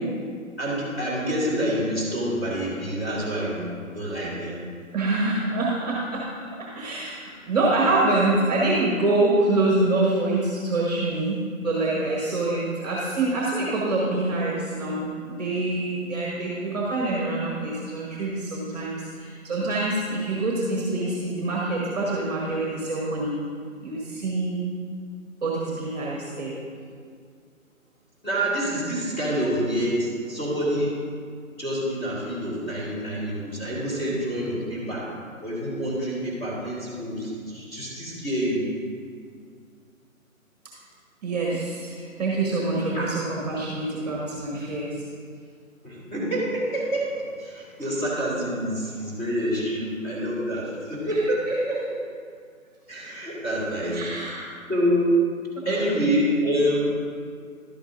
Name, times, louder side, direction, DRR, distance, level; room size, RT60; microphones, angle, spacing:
voice 1, 0.6-3.6 3.9-4.6 28.2-31.0 31.6-35.1 35.4-38.7 42.9-43.1 45.8-52.0 52.9-54.3 54.7-55.1 55.6-56.8, equal, 10° left, -10 dB, 2.1 m, -27 dB
voice 2, 4.9-23.4 23.8-24.7 25.4-26.6 41.2-45.0 51.1-51.2 53.9-54.5 55.5-55.9, right 2 dB, 30° right, -3 dB, 1.3 m, -26 dB
11.5 x 8.8 x 2.6 m, 2.1 s
figure-of-eight pair, 145°, 42 cm